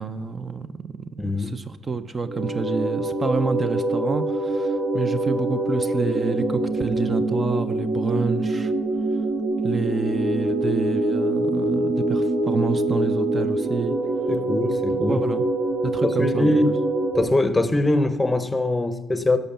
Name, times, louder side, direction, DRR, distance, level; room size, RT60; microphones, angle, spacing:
voice 1, 0.0-8.7 9.6-13.9 15.1-15.4 15.8-16.8, right 4 dB, 35° right, 0.5 m, -28 dB
voice 2, 1.2-1.6 14.3-15.2 16.0-16.8 17.1-19.4, left 2 dB, 15° left, 0.8 m, -22 dB
sound 1, 2.2-17.2, right 2 dB, 70° right, 1.7 m, -24 dB
11.5 x 5.4 x 6.8 m
cardioid pair, 90°, 0 cm